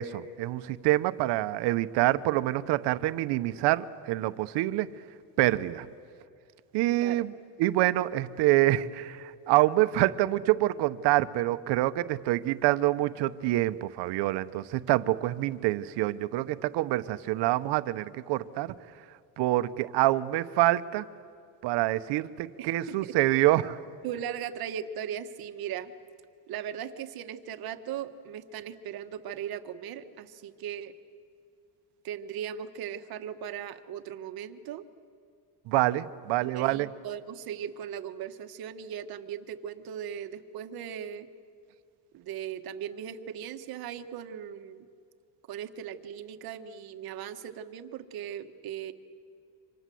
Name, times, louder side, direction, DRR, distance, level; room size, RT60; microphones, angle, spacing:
voice 1, 0.0-4.9 5.4-5.9 6.7-7.3 7.6-18.7 19.4-21.0 21.6-23.8 35.7-36.9, right 16 dB, 90° right, 13 dB, 1.0 m, -26 dB
voice 2, 22.6-23.1 24.0-25.9 26.5-30.9 32.0-34.8 36.4-41.3 42.1-44.8 45.5-48.9, right 9 dB, 60° right, 8 dB, 1.5 m, -38 dB
27.5 x 26.0 x 7.7 m, 2.4 s
cardioid pair, 140°, 40 cm